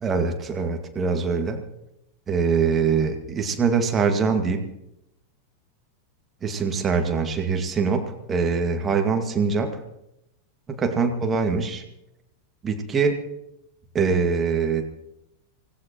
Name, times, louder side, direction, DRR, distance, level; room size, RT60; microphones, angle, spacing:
voice 1, 0.0-1.6 2.3-4.6 6.4-9.8 10.8-11.8 12.6-13.2 13.9-14.8, right 5 dB, 20° right, 4 dB, 2.0 m, -23 dB
25.0 x 17.5 x 3.1 m, 0.84 s
figure-of-eight pair, 90°, 0 cm